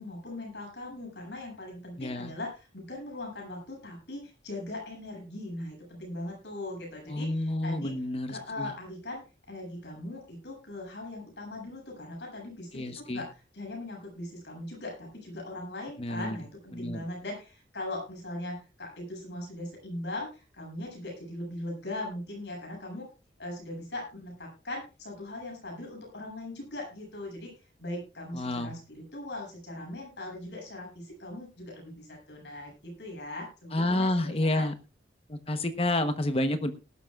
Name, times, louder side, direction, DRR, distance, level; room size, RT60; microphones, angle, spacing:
voice 1, 0.0-7.9 8.3-9.2 9.5-13.3 13.5-23.1 23.4-27.5 27.8-34.7, left 1 dB, 80° left, 1 dB, 7.8 m, -40 dB
voice 2, 2.0-2.3 7.1-8.7 12.7-13.2 16.0-16.4 16.7-17.0 28.3-28.8 33.7-34.7 35.3-36.7, left 1 dB, 35° left, 9 dB, 1.0 m, -29 dB
18.5 x 12.5 x 2.4 m, 0.30 s
head